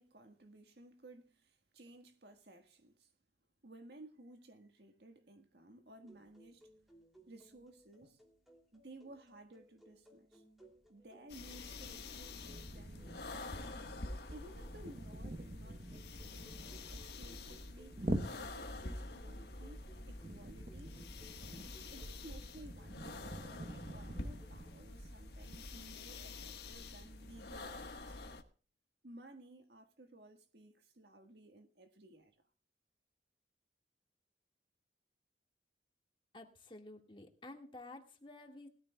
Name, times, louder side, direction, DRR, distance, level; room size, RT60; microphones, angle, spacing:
voice 1, 0.0-3.1 3.6-6.7 7.3-8.2 8.7-10.4 10.9-13.5 14.3-20.9 21.9-28.2 29.0-32.4, right 1 dB, 65° right, 1.5 m, -57 dB
sound 1, 6.0-24.7, right 1 dB, ahead, 2.7 m, -64 dB
sound 2, 11.3-28.4, left 2 dB, 65° left, 1.4 m, -48 dB
sound 3, 12.3-25.8, right 1 dB, 45° right, 0.9 m, -46 dB
voice 2, 36.3-38.7, left 2 dB, 30° left, 1.8 m, -52 dB
19.5 x 14.0 x 2.3 m
head